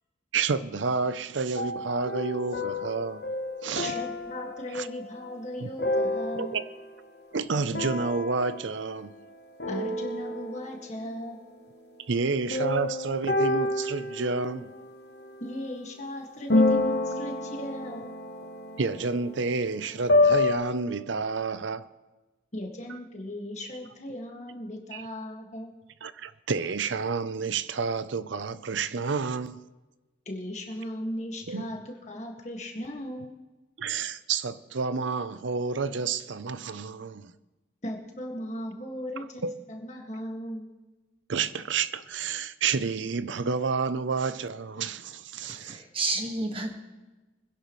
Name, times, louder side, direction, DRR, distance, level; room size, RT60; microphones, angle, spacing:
voice 1, 0.3-3.3 3.6-4.0 4.7-4.9 5.6-5.7 6.3-6.7 7.3-9.1 12.1-14.7 18.8-21.9 24.9-25.0 26.0-29.7 31.5-31.7 33.8-37.3 39.4-39.6 41.3-45.8, right 4 dB, 75° right, 0.6 m, -30 dB
sound 1, 1.5-7.0 7.7-9.3 9.6-10.9 12.5-15.6 16.5-20.6, left 2 dB, 55° left, 1.1 m, -29 dB
voice 2, 3.8-6.6 9.7-11.4 15.4-18.2 22.5-25.7 30.3-33.3 37.8-40.7, left 1 dB, 35° left, 1.9 m, -37 dB
voice 3, 45.6-46.7, right 3 dB, 30° right, 1.5 m, -30 dB
24.5 x 10.5 x 3.2 m
head